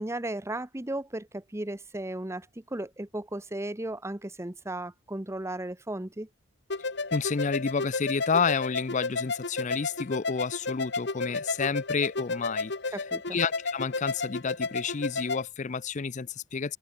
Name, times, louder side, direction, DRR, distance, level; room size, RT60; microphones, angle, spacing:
voice 1, 0.0-6.3 12.9-13.4, right 1 dB, 15° right, 0.9 m, -35 dB
sound 1, 6.7-15.4, left 3 dB, 60° left, 1.7 m, -32 dB
voice 2, 7.1-13.0 13.3-16.8, left 5 dB, 40° left, 0.5 m, -30 dB
open air
head